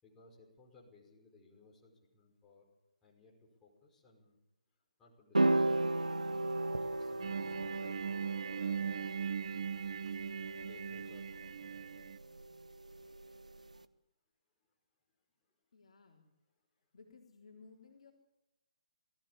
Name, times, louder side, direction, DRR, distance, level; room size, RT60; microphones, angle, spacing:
voice 1, 0.0-2.6 3.0-3.3 3.6-4.4 5.0-6.4 6.9-9.2 10.5-12.1, left 3 dB, 15° left, -3 dB, 5.5 m, -62 dB
sound 1, 5.3-13.8, right 2 dB, 85° right, 1.0 m, -36 dB
sound 2, 7.2-12.2, right 7 dB, 55° right, 0.8 m, -39 dB
voice 2, 15.7-16.3 16.9-18.1, left 4 dB, 60° left, 0 dB, 3.9 m, -58 dB
19.5 x 15.0 x 8.7 m, 0.92 s
figure-of-eight pair, 135°, 4 cm